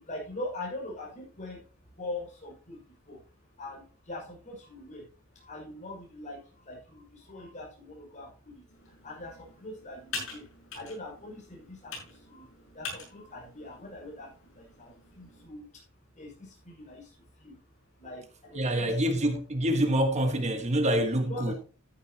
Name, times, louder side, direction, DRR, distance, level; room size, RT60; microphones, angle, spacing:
voice 1, 0.0-3.2 3.5-5.0 5.3-15.8 16.1-17.6 18.0-19.0 21.3-21.6, left 2 dB, 35° left, 5.9 m, -43 dB
Computer keyboard, 8.7-15.5, left 4 dB, 65° left, 6.8 m, -44 dB
voice 2, 18.5-21.5, right 1 dB, 35° right, 1.5 m, -26 dB
13.5 x 9.5 x 2.9 m
head